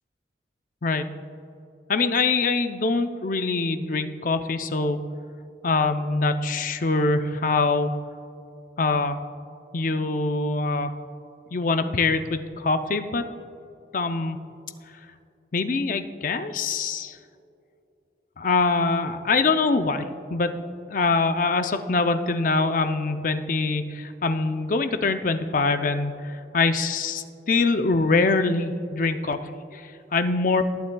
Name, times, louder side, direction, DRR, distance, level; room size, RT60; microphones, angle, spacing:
voice 1, 1.9-5.0 5.6-7.9 8.8-9.2 9.7-10.9 11.5-13.2 13.9-14.4 15.5-17.2 18.4-20.5 20.9-29.4 29.7-29.8 30.1-30.6, left 3 dB, 50° left, 8 dB, 0.5 m, -24 dB
19.0 x 9.1 x 2.3 m, 2.6 s
head